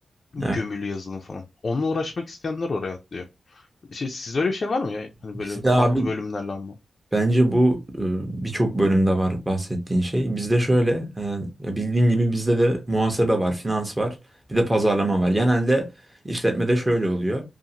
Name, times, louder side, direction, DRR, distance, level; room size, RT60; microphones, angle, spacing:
voice 1, 0.3-6.8, left 3 dB, 45° left, 0.4 m, -29 dB
voice 2, 5.5-6.1 7.1-14.2 14.5-15.9 16.2-17.4, right 1 dB, 15° right, 0.7 m, -22 dB
2.5 x 2.4 x 2.8 m
wide cardioid pair, 130°, 0 cm